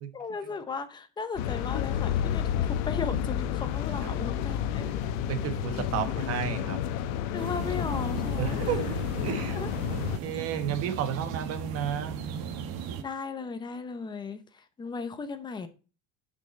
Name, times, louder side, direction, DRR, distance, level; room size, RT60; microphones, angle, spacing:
voice 1, 0.1-5.0 7.3-8.8 9.5-9.7 13.0-15.7, left 5 dB, 10° left, 0.7 m, -36 dB
sound 1, 1.4-10.2, left 10 dB, 65° left, 0.9 m, -30 dB
voice 2, 5.3-6.8 8.4-9.6 9.9-12.2, right 8 dB, 35° right, 1.2 m, -32 dB
sound 2, 7.4-13.0, right 7 dB, 80° right, 1.6 m, -37 dB
9.7 x 5.7 x 3.9 m
cardioid pair, 170°, 39 cm